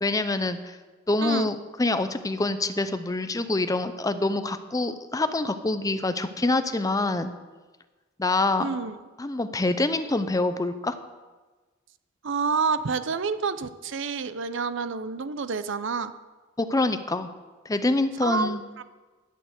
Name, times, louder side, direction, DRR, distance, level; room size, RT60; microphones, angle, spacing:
voice 1, 0.0-0.8 1.1-7.3 8.2-8.7 9.2-10.9 16.6-17.3 17.7-18.6, left 2 dB, 20° left, 10 dB, 0.5 m, -26 dB
voice 2, 8.6-9.0 12.2-16.1 18.2-18.8, right 5 dB, 65° right, 13 dB, 0.6 m, -28 dB
12.0 x 6.7 x 8.0 m, 1.3 s
head